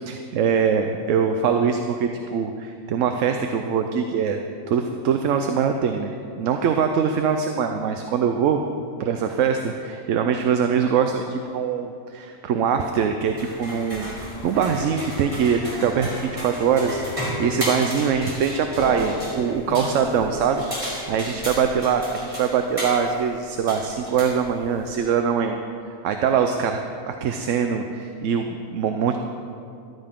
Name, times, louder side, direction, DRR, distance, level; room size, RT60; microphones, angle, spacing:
voice 1, 0.0-4.4 4.7-8.6 9.0-14.1 14.4-25.6 25.9-29.2, right 7 dB, 75° right, 5 dB, 1.0 m, -23 dB
sound 1, 13.3-24.9, equal, 25° right, 3.4 m, -33 dB
Guitar, 15.9-18.4 19.1-21.0, left 5 dB, 35° left, 3.1 m, -38 dB
14.5 x 12.5 x 3.7 m, 2.5 s
omnidirectional pair, 1.4 m